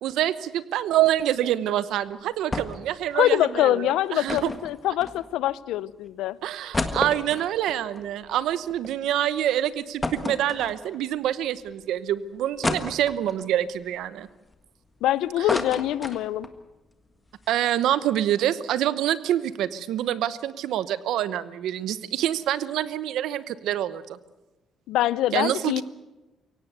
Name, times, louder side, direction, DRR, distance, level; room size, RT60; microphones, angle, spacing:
voice 1, 0.0-4.5 6.4-14.3 15.4-15.5 17.5-24.2 25.3-25.8, right 12 dB, 75° right, 15 dB, 1.0 m, -26 dB
sound 1, 2.5-2.9 3.2-3.3 4.3-5.5 6.1-6.2 6.5-8.9 9.3-9.4 10.0-11.1 11.7-11.8 12.6-13.5 14.0-15.0 15.2-16.6 16.9-17.0 17.3-17.5, left 2 dB, 15° left, 1.5 m, -31 dB
voice 2, 3.1-6.4 15.0-16.5 24.9-25.8, left 13 dB, 90° left, 19 dB, 0.6 m, -24 dB
23.5 x 17.5 x 8.1 m, 1.1 s
cardioid pair, 140°, 0 cm